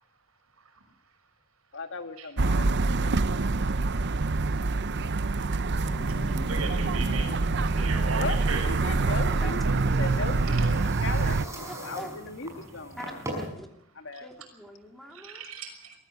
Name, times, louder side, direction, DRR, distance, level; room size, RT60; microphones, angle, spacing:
voice 1, 1.7-3.5 8.1-13.0 14.0-14.3, left 3 dB, 60° left, 8 dB, 1.8 m, -37 dB
sound 1, 2.4-11.5, right 3 dB, 55° right, 0.7 m, -26 dB
sound 2, 5.8-8.9, equal, 30° left, 6.2 m, -42 dB
voice 2, 6.4-7.3 7.8-8.7 10.5-10.7 15.1-15.9, right 4 dB, 90° right, 4 dB, 5.9 m, -36 dB
voice 3, 7.7-8.3 9.0-10.3 11.6-12.1 13.0-13.7 14.2-15.4, equal, ahead, 3 dB, 2.8 m, -45 dB
sound 3, 8.2-13.5, right 1 dB, 15° right, 5.8 m, -41 dB
23.0 x 14.5 x 7.9 m, 0.74 s
head